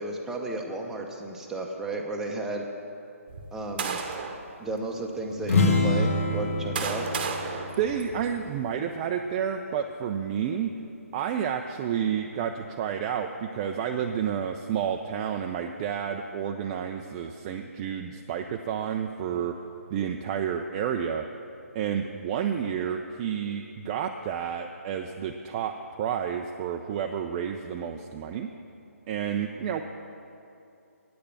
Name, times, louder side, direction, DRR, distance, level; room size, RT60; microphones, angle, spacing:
voice 1, 0.0-2.7 3.5-4.0 4.6-7.1 22.6-22.7, right 2 dB, 5° right, 0 dB, 0.8 m, -33 dB
sound 1, 3.3-4.4 5.2-5.3 6.2-8.6, right 5 dB, 40° right, 0.9 m, -34 dB
sound 2, 5.4-9.1, left 2 dB, 65° left, 1.4 m, -27 dB
voice 2, 7.8-10.7 11.1-19.5 19.9-21.3 21.7-25.7 26.0-28.5 29.1-29.8, right 8 dB, 25° right, 4 dB, 0.3 m, -30 dB
9.3 x 6.6 x 8.6 m, 2.7 s
figure-of-eight pair, 145°, 8 cm